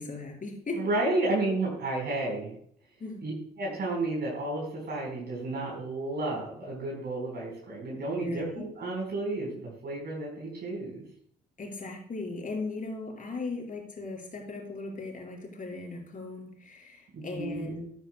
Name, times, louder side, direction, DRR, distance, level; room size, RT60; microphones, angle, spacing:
voice 1, 0.0-0.8 3.0-3.2 8.1-8.6 11.6-17.9, left 3 dB, 40° left, -1 dB, 4.8 m, -38 dB
voice 2, 0.7-2.5 3.2-11.0 17.1-17.7, right 2 dB, 50° right, -3 dB, 4.3 m, -32 dB
12.0 x 12.0 x 2.2 m, 0.62 s
hypercardioid pair, 50°, 21 cm